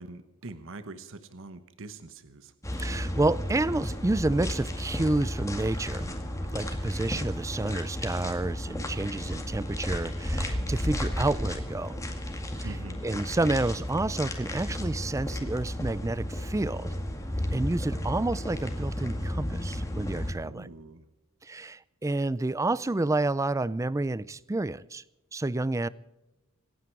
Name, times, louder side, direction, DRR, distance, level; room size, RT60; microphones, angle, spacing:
voice 1, 0.0-2.5 12.6-13.0 17.9-18.4 20.4-21.1, right 2 dB, 60° right, 11 dB, 1.1 m, -44 dB
sound 1, 2.6-20.3, left 1 dB, 15° left, 2.0 m, -33 dB
voice 2, 2.8-6.1 6.5-11.9 12.6-12.7 13.0-16.9 17.5-20.7 21.4-25.0 25.3-25.9, right 2 dB, 15° right, 20 dB, 0.4 m, -29 dB
26.5 x 9.6 x 4.7 m, 0.99 s
head